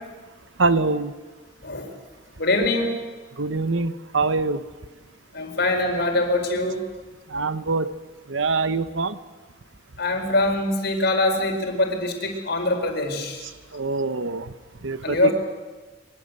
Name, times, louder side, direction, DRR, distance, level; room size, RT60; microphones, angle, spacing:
voice 1, 0.6-1.1 3.4-4.6 7.3-7.9 8.3-9.2 13.7-14.5 14.8-15.3, right 3 dB, 80° right, 13 dB, 1.1 m, -24 dB
voice 2, 2.4-3.0 5.3-6.8 10.0-13.5 15.0-15.3, left 2 dB, 55° left, 4 dB, 4.6 m, -23 dB
23.5 x 22.5 x 8.1 m, 1.3 s
head